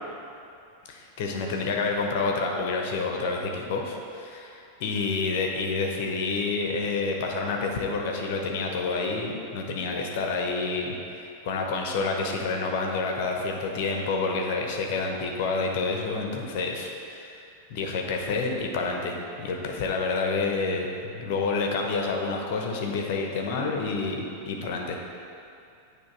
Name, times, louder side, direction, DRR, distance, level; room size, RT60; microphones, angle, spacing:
voice 1, 0.9-17.4 17.7-25.0, left 3 dB, 50° left, 1 dB, 0.8 m, -28 dB
8.9 x 3.3 x 4.6 m, 2.6 s
figure-of-eight pair, 90°, 0 cm